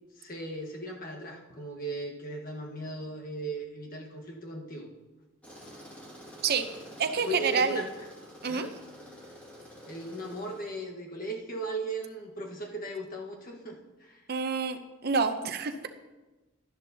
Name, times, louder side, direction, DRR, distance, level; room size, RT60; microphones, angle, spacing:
voice 1, 0.2-4.9 7.2-7.9 8.5-8.8 9.8-14.2, right 1 dB, 45° left, 1 dB, 1.3 m, -37 dB
Tools, 5.4-10.8, equal, 5° left, 2.1 m, -49 dB
voice 2, 7.0-7.9 8.4-8.7 14.3-15.9, right 5 dB, 50° right, 8 dB, 0.7 m, -28 dB
12.0 x 10.5 x 2.8 m, 1.1 s
head